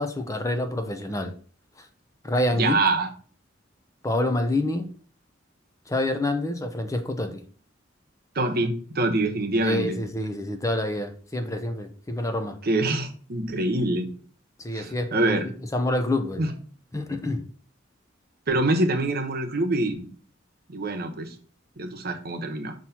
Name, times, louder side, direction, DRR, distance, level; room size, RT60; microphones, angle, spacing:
voice 1, 0.0-1.3 1.8-1.9 2.2-2.8 4.0-4.9 5.9-7.4 9.6-12.6 14.6-16.5 16.9-17.5, left 1 dB, 15° left, 6 dB, 0.6 m, -27 dB
voice 2, 2.5-3.1 8.3-10.0 12.6-14.1 14.7-15.5 16.4-16.5 18.5-20.0 20.7-21.3 21.8-22.7, right 2 dB, 55° right, 4 dB, 1.0 m, -25 dB
5.9 x 3.0 x 5.6 m, 0.42 s
head